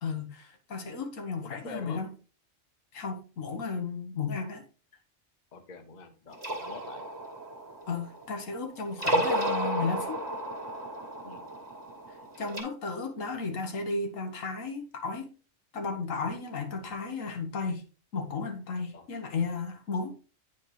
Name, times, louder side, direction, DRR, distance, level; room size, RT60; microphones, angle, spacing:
voice 1, 0.0-2.1 2.9-4.6 7.9-10.3 12.4-15.3 15.7-17.8 18.1-20.1, left 4 dB, 85° left, 1.5 m, -34 dB
voice 2, 1.4-2.0 5.5-7.0 11.2-11.5 18.9-19.1, left 5 dB, 40° left, 0.9 m, -45 dB
sound 1, 6.3-8.5 8.9-12.6, right 1 dB, 30° right, 1.6 m, -32 dB
9.4 x 4.4 x 3.2 m
omnidirectional pair, 1.3 m